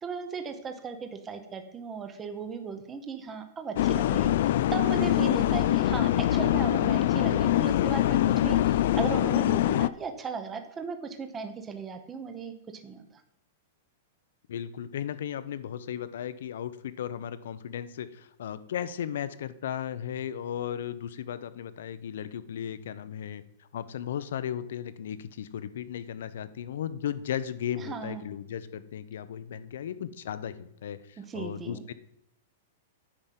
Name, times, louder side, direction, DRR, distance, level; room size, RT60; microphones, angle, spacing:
voice 1, 0.0-13.2 27.8-28.2 31.2-31.8, right 5 dB, 10° right, 7 dB, 0.8 m, -37 dB
sound 1, 3.8-9.9, left 13 dB, 45° left, 0.3 m, -24 dB
voice 2, 14.5-23.4 23.7-31.9, left 9 dB, 65° left, 14 dB, 0.7 m, -36 dB
9.8 x 5.2 x 7.4 m, 0.75 s
supercardioid pair, 180°, 0 cm